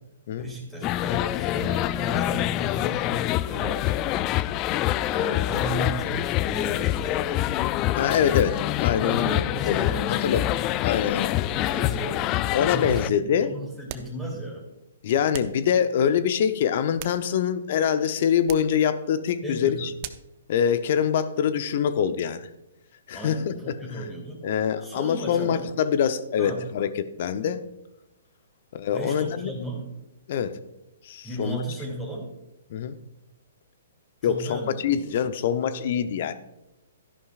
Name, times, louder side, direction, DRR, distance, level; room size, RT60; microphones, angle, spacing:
voice 1, 0.4-4.1 5.1-7.5 9.0-10.3 11.5-14.6 19.4-19.9 23.1-24.4 24.8-25.7 26.4-26.6 28.9-29.9 31.2-32.3 34.2-34.9, right 1 dB, 5° left, -2 dB, 2.8 m, -35 dB
sound 1, 0.8-13.1, left 14 dB, 30° left, 0.3 m, -26 dB
voice 2, 8.0-9.4 9.7-10.4 10.8-11.4 12.5-13.5 15.0-19.9 20.5-22.4 23.1-24.0 24.4-27.6 28.7-29.5 30.3-30.6 31.0-31.6 32.7-33.0 34.2-36.3, left 8 dB, 50° left, 12 dB, 0.7 m, -25 dB
sound 2, 13.9-14.2 15.3-15.6 16.7-17.6 18.4-18.8 20.0-20.4, right 12 dB, 40° right, 0.6 m, -40 dB
12.5 x 11.0 x 2.4 m, 0.92 s
figure-of-eight pair, 125°, 0 cm